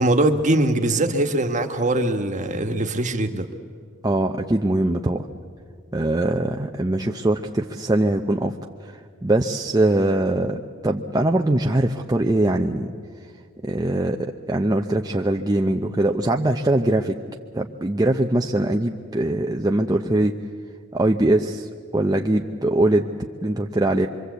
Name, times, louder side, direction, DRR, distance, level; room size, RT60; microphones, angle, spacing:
voice 1, 0.0-3.5, right 1 dB, 40° right, 6 dB, 1.5 m, -21 dB
voice 2, 4.0-5.3 5.9-12.9 13.6-17.2 17.5-20.4 20.9-23.1 23.4-24.1, right 1 dB, 20° right, 3 dB, 0.7 m, -22 dB
25.0 x 24.5 x 8.2 m, 2.1 s
head